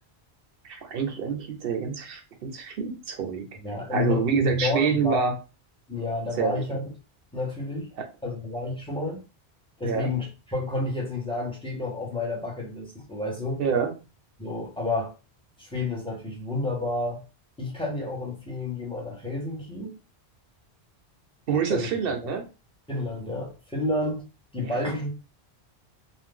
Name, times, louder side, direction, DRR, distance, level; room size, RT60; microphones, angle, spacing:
voice 1, 0.6-3.5 3.9-5.4 6.4-6.6 8.0-8.1 9.8-10.1 13.6-13.9 21.5-22.4 24.6-24.8, right 6 dB, 60° right, 0.8 m, -27 dB
voice 2, 3.6-5.3 5.9-6.8 7.3-7.9 8.2-9.2 9.8-13.6 14.4-15.1 15.6-17.2 17.6-20.0 21.7-21.9 22.2-22.3 22.9-24.2 24.5-25.1, left 2 dB, 5° left, 0.9 m, -30 dB
2.5 x 2.2 x 3.6 m
omnidirectional pair, 1.1 m